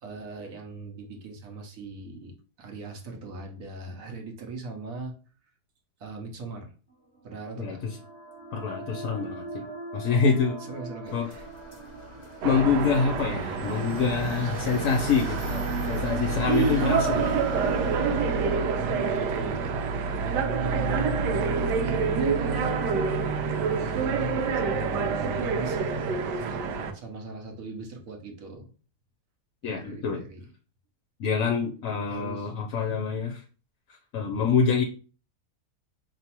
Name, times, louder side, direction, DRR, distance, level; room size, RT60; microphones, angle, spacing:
voice 1, 0.0-2.3 2.6-5.1 6.0-6.7 7.2-7.8 10.6-11.5 18.8-22.7 23.5-26.0 26.3-26.6 26.9-28.7 29.6-30.4 32.1-32.5, right 3 dB, 60° right, 2 dB, 1.1 m, -39 dB
sound 1, 7.1-21.3, right 3 dB, 20° right, 0.7 m, -41 dB
voice 2, 7.6-8.0 8.5-9.7 9.9-10.6 11.1-11.3 12.4-17.4 29.6-30.2 31.2-33.4 34.1-34.8, left 5 dB, 65° left, 2 dB, 0.9 m, -26 dB
sound 2, 11.0-18.6, left 1 dB, 30° left, 1.1 m, -41 dB
sound 3, 12.4-26.9, right 5 dB, 85° right, 1.2 m, -27 dB
4.5 x 3.1 x 2.9 m, 0.37 s
omnidirectional pair, 1.8 m